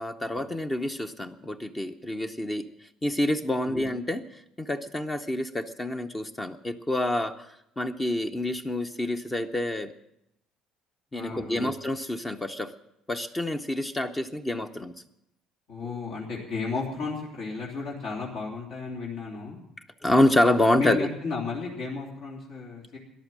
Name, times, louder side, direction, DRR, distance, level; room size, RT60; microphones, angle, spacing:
voice 1, 0.0-2.6 3.0-7.5 7.8-9.9 11.1-12.7 13.1-14.9 15.9-16.0 20.0-21.1, left 1 dB, 15° left, 7 dB, 0.7 m, -27 dB
voice 2, 11.1-11.7 15.7-19.6 20.7-23.0, left 4 dB, 70° left, -3 dB, 3.2 m, -34 dB
13.5 x 11.0 x 7.3 m, 0.80 s
cardioid pair, 120°, 0 cm